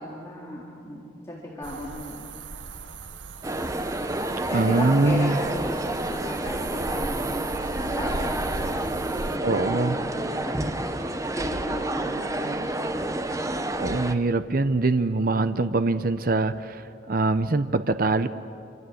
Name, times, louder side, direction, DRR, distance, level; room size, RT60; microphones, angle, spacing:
voice 1, 0.0-2.3 3.5-4.0 4.5-13.5, equal, 15° left, -6 dB, 3.9 m, -36 dB
sound 1, 1.6-9.4, right 3 dB, 85° right, 1.0 m, -38 dB
sound 2, 3.4-14.1, right 1 dB, 15° right, 0.9 m, -29 dB
voice 2, 4.5-5.4 9.4-10.0 13.8-18.3, right 3 dB, 50° right, 11 dB, 0.8 m, -23 dB
27.5 x 27.0 x 8.0 m, 2.6 s
head